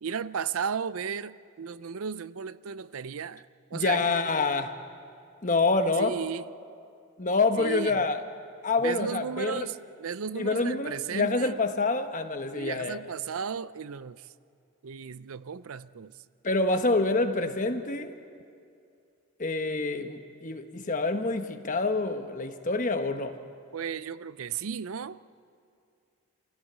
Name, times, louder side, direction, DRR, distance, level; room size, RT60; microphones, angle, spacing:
voice 1, 0.0-3.5 3.7-4.1 6.0-6.4 7.6-8.0 8.8-11.5 12.5-14.3 14.8-16.1 23.7-25.2, right 7 dB, 75° right, 0.5 m, -34 dB
voice 2, 3.7-4.8 5.4-6.2 7.2-8.2 8.6-9.7 10.4-13.0 16.4-18.1 19.4-23.3, left 3 dB, 35° left, 1.1 m, -27 dB
27.5 x 16.5 x 8.0 m
head